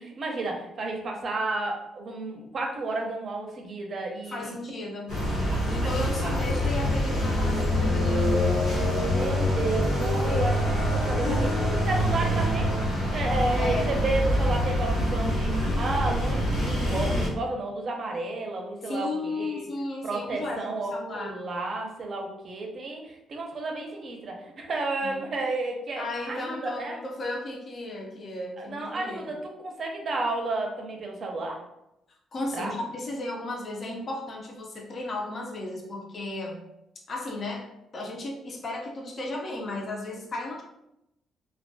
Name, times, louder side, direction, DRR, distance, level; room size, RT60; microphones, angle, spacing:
voice 1, 0.0-4.5 5.5-5.6 6.2-6.4 9.0-12.7 13.1-19.7 20.0-27.0 28.6-31.6 32.5-32.7, right 2 dB, 50° right, 1 dB, 0.5 m, -32 dB
voice 2, 4.3-5.1 5.7-8.6 10.2-10.8 11.2-11.5 13.6-13.9 18.8-21.3 25.0-25.2 26.0-29.3 32.3-36.6 37.1-37.6 37.9-40.6, left 2 dB, 45° left, -1 dB, 0.5 m, -34 dB
sound 1, 5.1-17.3, left 1 dB, 80° left, 0.9 m, -25 dB
2.2 x 2.2 x 2.6 m, 0.85 s
cardioid pair, 90°, 0 cm